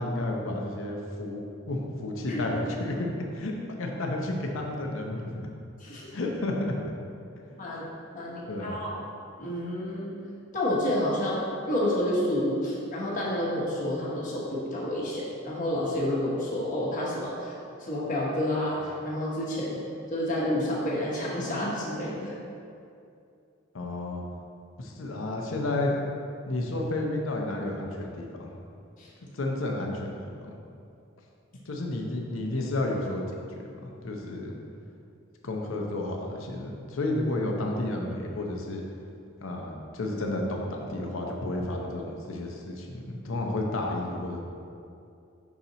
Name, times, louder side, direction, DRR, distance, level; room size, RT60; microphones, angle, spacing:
voice 1, 0.0-3.1 3.3-3.5 3.8-5.3 6.1-6.7 8.5-8.8 23.7-24.2 24.8-26.0 26.5-28.5 29.3-30.6 31.7-33.4 33.8-34.5 35.4-38.8 39.4-44.4, left 2 dB, 75° left, 1 dB, 0.7 m, -31 dB
voice 2, 5.8-6.1 7.6-7.9 8.1-9.0 9.4-10.1 10.5-19.8 20.1-22.3 29.0-29.1, left 1 dB, 40° left, -6 dB, 1.2 m, -29 dB
5.9 x 4.3 x 3.9 m, 2.5 s
head